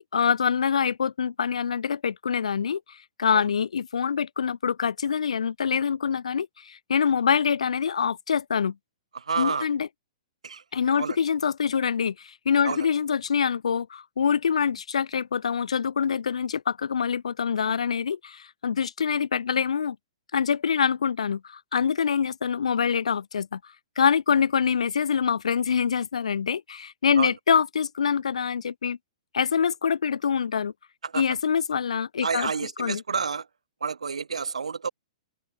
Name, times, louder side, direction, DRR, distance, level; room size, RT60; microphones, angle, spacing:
voice 1, 0.0-8.7 9.4-9.9 10.7-20.0 20.3-23.6 24.0-29.0 29.3-30.7 31.1-32.5 32.8-33.0, left 7 dB, 80° left, 5.0 m, -25 dB
voice 2, 9.1-9.7 10.4-10.6 10.9-11.2 12.6-12.9 27.1-27.3 31.0-31.2 32.2-33.5 33.8-34.9, right 5 dB, 90° right, 3.0 m, -29 dB
open air
hypercardioid pair, 125°, 3 cm